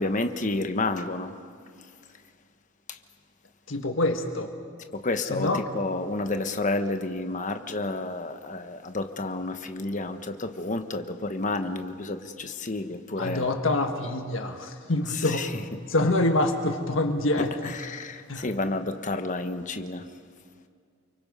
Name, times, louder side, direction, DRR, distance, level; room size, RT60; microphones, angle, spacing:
voice 1, 0.0-1.3 2.9-3.0 4.9-13.5 15.1-15.6 17.4-20.0, left 2 dB, 40° left, 7 dB, 1.2 m, -30 dB
voice 2, 3.7-4.5 5.3-5.6 13.2-15.5 15.9-17.5 18.3-18.4, left 2 dB, 75° left, 5 dB, 1.5 m, -25 dB
29.5 x 24.0 x 5.5 m, 2.2 s
head